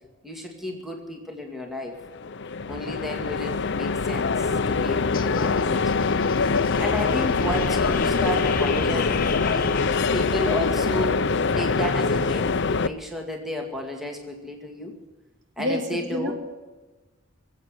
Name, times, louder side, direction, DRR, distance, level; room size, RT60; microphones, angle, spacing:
voice 1, 0.2-2.0 2.7-5.9 6.8-9.7 10.1-11.3 11.5-14.9 15.6-16.3, left 1 dB, ahead, 1 dB, 2.2 m, -32 dB
sound 1, 2.0-12.9, left 4 dB, 60° left, 0.6 m, -24 dB
sound 2, 5.1-10.8, left 4 dB, 45° left, 1.1 m, -35 dB
voice 2, 15.6-16.3, equal, 60° right, 4 dB, 2.8 m, -28 dB
22.0 x 8.6 x 7.8 m, 1.2 s
head